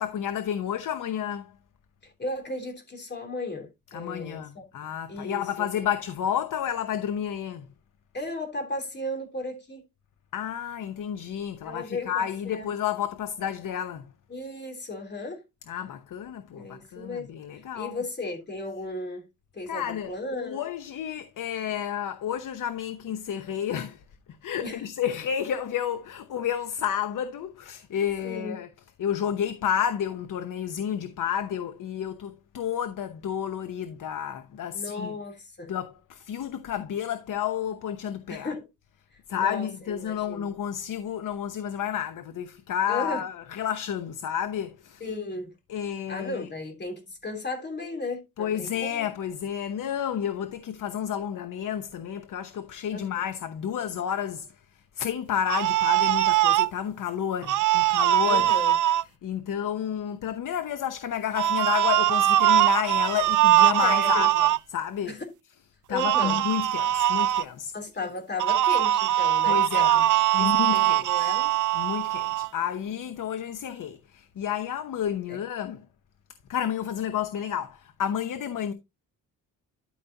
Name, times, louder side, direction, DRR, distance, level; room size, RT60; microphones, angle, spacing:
voice 1, 0.0-1.6 3.9-7.7 10.3-14.1 15.7-18.0 19.7-24.0 24.4-28.7 29.0-35.2 35.7-38.5 39.3-45.1 45.7-46.5 48.4-58.7 59.2-65.1 65.9-67.7 69.4-70.0 70.3-71.4 71.7-75.8 76.5-78.7, left 9 dB, 65° left, 0.9 m, -31 dB
voice 2, 2.0-4.6 5.1-5.7 8.1-9.8 11.6-12.7 14.3-15.4 16.5-17.3 17.7-19.2 19.5-20.6 24.6-24.8 28.2-28.6 34.7-35.7 38.3-38.6 39.3-40.4 42.9-43.2 45.0-45.5 46.1-49.1 52.9-53.1 58.2-58.7 63.8-64.3 65.1-65.2 65.9-66.4 67.7-69.9 70.3-71.5 75.3-75.4, left 2 dB, 30° left, 3.2 m, -35 dB
sound 1, 55.5-56.7 57.4-59.0 61.3-64.6 66.0-67.4 68.4-72.5, right 13 dB, 65° right, 0.5 m, -22 dB
12.5 x 5.6 x 2.7 m
wide cardioid pair, 150°, 34 cm